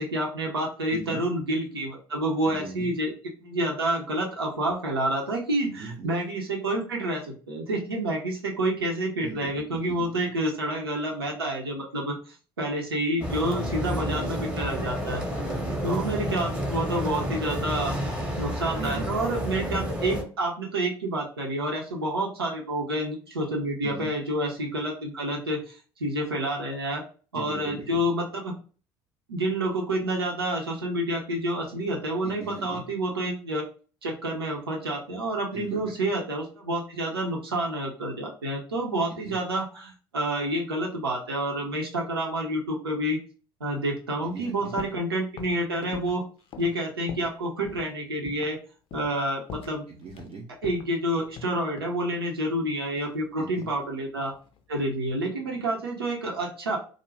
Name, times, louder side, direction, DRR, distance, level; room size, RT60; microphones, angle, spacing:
voice 1, 0.0-3.1 3.4-15.2 15.8-17.9 18.4-27.0 27.3-28.5 29.3-33.6 34.0-43.2 43.6-46.2 46.6-48.6 48.9-49.8 50.6-54.3 54.7-56.8, right 1 dB, 90° right, -1 dB, 0.6 m, -29 dB
voice 2, 0.9-1.2 2.4-2.9 5.6-6.1 9.2-10.2 14.0-14.3 15.4-15.8 18.8-19.1 23.8-24.1 27.3-28.0 32.2-32.9 35.5-35.9 39.1-39.4 44.2-44.8 49.9-50.5 53.4-53.7, right 3 dB, 45° right, -2 dB, 0.6 m, -40 dB
sound 1, 13.2-20.2, equal, 10° right, 0.8 m, -30 dB
sound 2, 44.8-45.1 45.4-47.4 47.6-47.9 48.3-48.6 48.9-49.2 49.5-50.3 50.6-52.0 52.9-53.9 54.1-54.6, left 7 dB, 50° left, 0.5 m, -43 dB
2.4 x 2.1 x 3.2 m, 0.39 s
hypercardioid pair, 60°, 12 cm